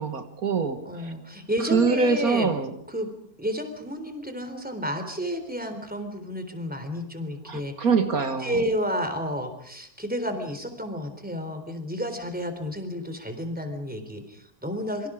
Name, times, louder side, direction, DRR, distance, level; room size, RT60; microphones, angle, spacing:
voice 1, 0.0-0.8 1.7-2.7 7.5-8.6, right 4 dB, 70° right, 8 dB, 2.1 m, -24 dB
voice 2, 0.9-2.5 2.9-3.1 3.4-7.7 8.4-15.1, equal, 5° right, 7 dB, 3.6 m, -31 dB
26.5 x 24.5 x 5.0 m, 0.68 s
omnidirectional pair, 1.6 m